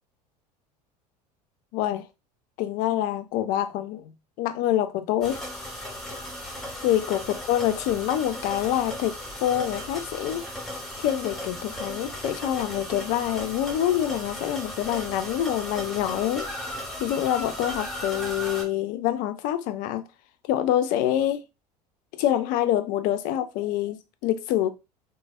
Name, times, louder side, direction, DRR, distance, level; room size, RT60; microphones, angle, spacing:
voice 1, 1.7-2.0 2.6-4.1 4.4-5.4 6.8-7.2 7.5-10.4 11.0-16.7 17.0-20.1 20.5-21.4 22.1-24.7, left 12 dB, 45° left, 0.4 m, -26 dB
sound 1, 5.2-18.6, equal, ahead, 0.8 m, -36 dB
3.1 x 2.1 x 2.4 m
figure-of-eight pair, 70°, 21 cm